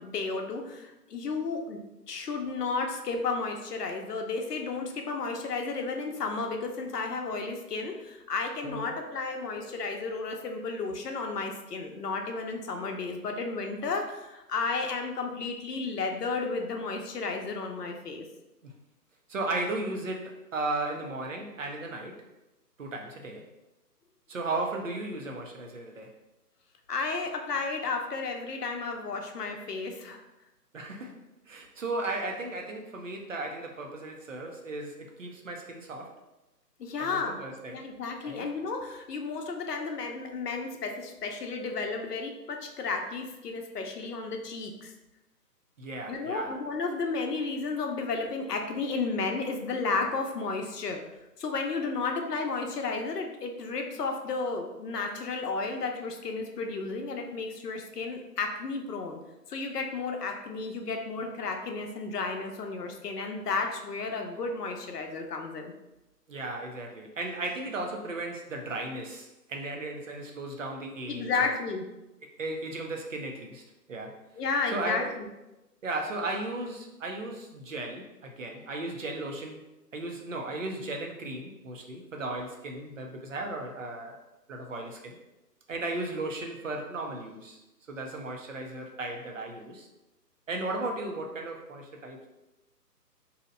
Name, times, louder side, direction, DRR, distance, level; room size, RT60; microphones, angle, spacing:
voice 1, 0.0-1.8 2.1-18.2 26.9-30.2 36.8-37.4 37.7-44.9 46.1-51.0 51.4-59.2 59.5-65.7 71.1-71.8 74.3-75.3, left 4 dB, 70° left, 3 dB, 0.7 m, -33 dB
voice 2, 19.3-22.2 22.8-23.4 24.3-26.1 30.7-31.1 31.5-36.1 37.0-37.8 38.2-38.5 45.8-46.5 66.3-71.5 72.2-73.6 73.9-74.2 74.7-75.2 75.8-84.2 84.5-85.1 85.7-87.6 87.9-89.9 90.5-92.3, right 2 dB, 50° right, 2 dB, 0.6 m, -35 dB
2.8 x 2.1 x 3.7 m, 0.97 s
hypercardioid pair, 170°, 49 cm